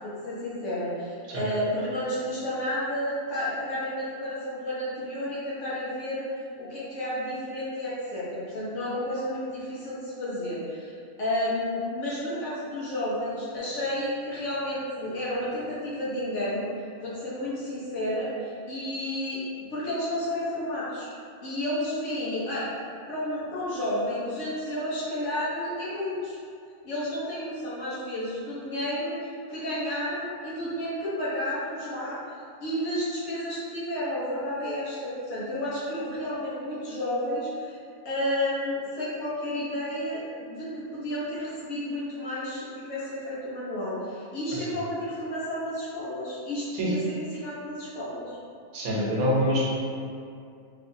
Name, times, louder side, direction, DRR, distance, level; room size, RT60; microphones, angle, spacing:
voice 1, 0.0-6.2 6.6-16.7 17.0-19.4 19.7-21.1 21.4-22.7 23.1-26.4 26.8-32.2 32.6-37.8 38.0-48.4, left 1 dB, 60° left, -8 dB, 1.2 m, -31 dB
voice 2, 48.7-49.7, equal, 85° right, -5 dB, 1.2 m, -25 dB
3.1 x 2.8 x 2.6 m, 2.4 s
omnidirectional pair, 1.5 m